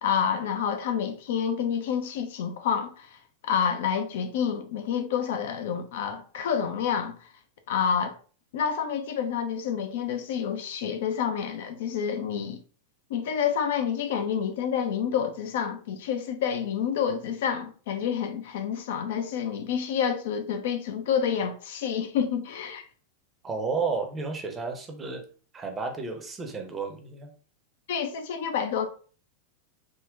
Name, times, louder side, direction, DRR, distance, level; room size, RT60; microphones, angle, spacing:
voice 1, 0.0-3.2 3.4-7.1 7.7-8.2 8.5-12.6 13.1-22.8 27.9-28.9, left 7 dB, 55° left, 0.3 m, -28 dB
voice 2, 23.4-25.2 25.5-27.3, right 4 dB, 20° right, 0.6 m, -32 dB
3.6 x 2.1 x 2.4 m
figure-of-eight pair, 90°, 0 cm